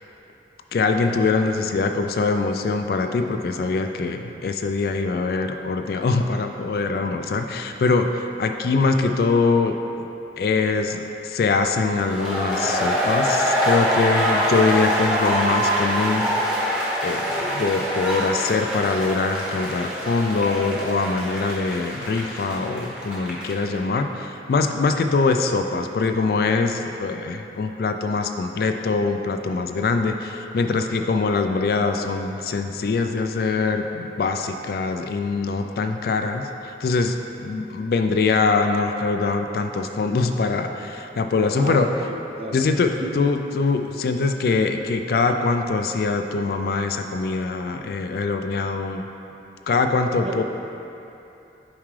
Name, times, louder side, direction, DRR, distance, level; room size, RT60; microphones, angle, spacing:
voice 1, 0.7-9.8 10.4-16.2 17.0-41.9 42.5-49.0 49.7-50.4, left 4 dB, 55° left, 6 dB, 0.3 m, -23 dB
sound 1, 12.0-23.7, equal, 5° right, 0.8 m, -24 dB
voice 2, 41.5-43.1 50.2-50.4, right 1 dB, 35° right, 1 dB, 0.5 m, -33 dB
7.2 x 4.7 x 3.2 m, 2.8 s
head